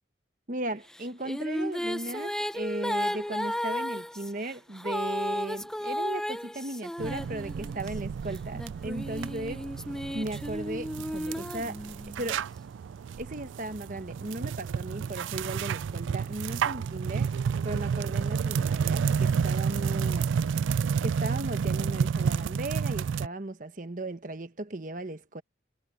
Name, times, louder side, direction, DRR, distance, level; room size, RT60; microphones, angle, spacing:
voice 1, 0.5-9.6 10.1-11.8 12.2-12.4 13.2-17.3 17.6-20.3 21.0-25.4, right 1 dB, 40° right, 1.2 m, -36 dB
sound 1, 0.9-7.9 8.5-12.3, equal, 5° left, 0.7 m, -34 dB
sound 2, 7.0-23.3, right 6 dB, 80° right, 0.3 m, -30 dB
head